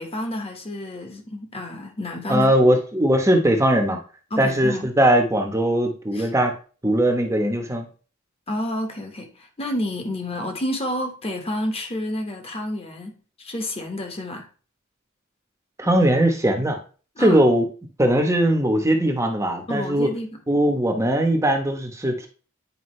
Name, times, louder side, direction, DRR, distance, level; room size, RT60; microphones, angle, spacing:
voice 1, 0.0-2.5 4.3-4.9 6.1-6.3 8.5-14.5 17.2-17.4 19.7-20.3, left 1 dB, 30° left, 1.4 m, -29 dB
voice 2, 2.3-4.0 4.4-6.5 6.8-7.9 15.8-16.8 17.2-17.6 18.0-20.1 20.5-22.3, right 1 dB, 15° right, 1.0 m, -20 dB
9.7 x 5.1 x 3.2 m
head